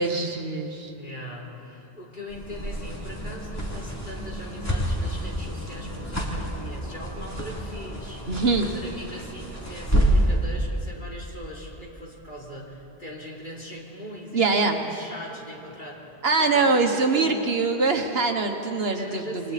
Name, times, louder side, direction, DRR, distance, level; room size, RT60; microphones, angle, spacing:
voice 1, 0.0-0.9 8.3-8.7 14.3-14.8 16.2-19.5, right 3 dB, 65° right, 4 dB, 1.6 m, -23 dB
voice 2, 0.9-8.3 8.6-17.5 18.9-19.5, equal, 50° left, -3 dB, 3.6 m, -40 dB
sound 1, 2.3-10.4, right 1 dB, 15° left, 2.8 m, -28 dB
28.0 x 22.5 x 4.2 m, 3.0 s
omnidirectional pair, 1.1 m